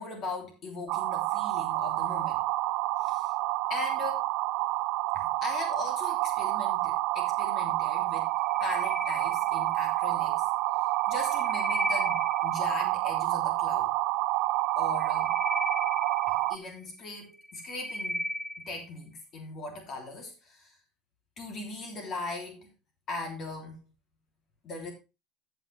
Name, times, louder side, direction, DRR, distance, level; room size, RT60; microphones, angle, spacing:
voice 1, 0.0-2.4 3.0-3.3 3.7-4.2 5.1-8.3 8.6-10.4 11.1-13.9 14.8-15.3 16.3-18.2 18.6-20.8 21.4-22.7 23.1-23.8 24.6-24.9, left 3 dB, 45° left, 2 dB, 3.2 m, -39 dB
sound 1, 0.9-16.6, right 19 dB, 65° right, 0.5 m, -28 dB
sound 2, 8.3-10.0 10.9-12.8 14.7-16.8 17.3-18.9, equal, 5° right, 0.4 m, -36 dB
14.0 x 6.0 x 3.4 m, 0.28 s
supercardioid pair, 95°, 0 cm